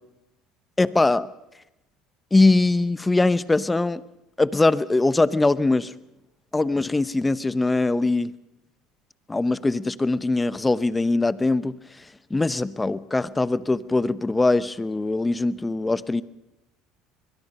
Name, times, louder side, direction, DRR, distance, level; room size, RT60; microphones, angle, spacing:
voice 1, 0.8-1.3 2.3-4.0 4.4-5.9 6.5-8.3 9.3-11.7 12.3-16.2, left 2 dB, 15° left, 16 dB, 0.9 m, -21 dB
23.5 x 21.5 x 5.5 m, 0.94 s
supercardioid pair, 90°, 0 cm